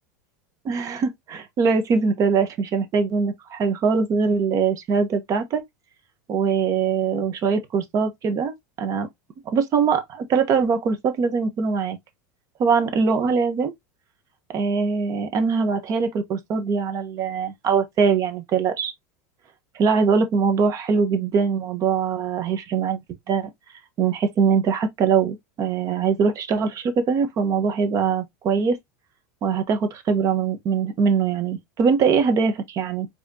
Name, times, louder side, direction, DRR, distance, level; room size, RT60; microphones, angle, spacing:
voice 1, 0.6-5.6 6.3-9.1 9.5-12.0 12.6-13.7 14.5-18.9 19.7-23.0 23.3-23.5 24.0-28.8 29.4-33.1, right 5 dB, 40° right, 1.4 m, -22 dB
5.1 x 3.4 x 2.9 m
hypercardioid pair, 110°, 9 cm